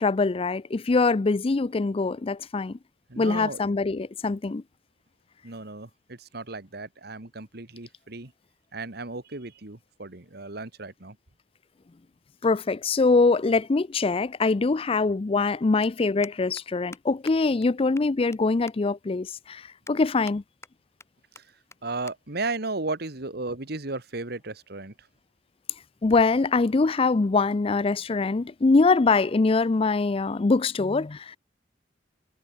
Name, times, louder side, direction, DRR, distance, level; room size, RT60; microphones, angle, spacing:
voice 1, 0.0-2.8 3.2-4.6 12.4-20.4 26.0-31.4, left 3 dB, 30° left, 0.4 m, -23 dB
voice 2, 3.1-3.6 5.4-8.3 8.7-11.2 21.4-21.5 21.8-25.1, right 3 dB, 60° right, 1.9 m, -35 dB
sound 1, 15.8-15.9 16.2-16.6 16.9-17.0 17.3-17.4 17.6-17.7 18.0-18.4 18.7-18.8 19.2-19.3 19.9-20.4 20.6-21.1 21.4-21.5 21.7-21.8 22.1-22.2 22.5-22.7 23.5-23.7, left 3 dB, 15° left, 4.1 m, -46 dB
head